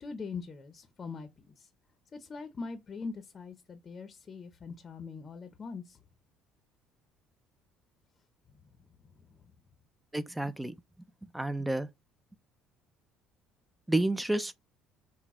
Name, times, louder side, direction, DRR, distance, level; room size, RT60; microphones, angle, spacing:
voice 1, 0.0-1.3 1.6-1.7 2.1-6.0, left 4 dB, 30° left, 0.6 m, -42 dB
voice 2, 10.1-10.7 11.3-11.9 13.9-14.5, right 1 dB, 5° right, 0.3 m, -30 dB
5.9 x 2.1 x 3.6 m
cardioid pair, 130°, 0 cm